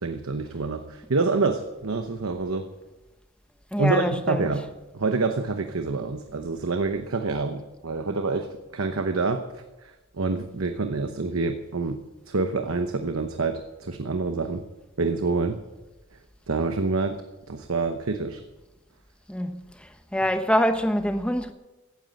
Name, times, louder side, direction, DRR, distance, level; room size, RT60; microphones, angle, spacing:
voice 1, 0.0-2.7 3.8-4.6 4.9-14.6 15.0-15.6 16.5-17.2 17.5-18.4, right 3 dB, 85° right, 0.9 m, -27 dB
voice 2, 3.7-4.5 19.3-21.5, equal, 5° left, 0.9 m, -25 dB
16.0 x 9.4 x 7.7 m
head